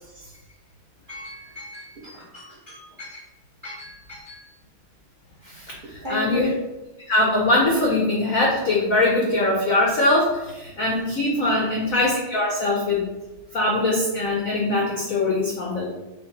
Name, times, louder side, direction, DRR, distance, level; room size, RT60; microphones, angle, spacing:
voice 1, 1.1-3.2 3.6-4.4 6.0-6.5 11.2-11.6, left 4 dB, 40° right, -6 dB, 0.7 m, -34 dB
voice 2, 5.4-6.5 7.1-13.1 13.5-15.8, left 2 dB, 75° left, -2 dB, 0.7 m, -22 dB
5.5 x 2.3 x 3.9 m, 1.0 s
omnidirectional pair, 2.4 m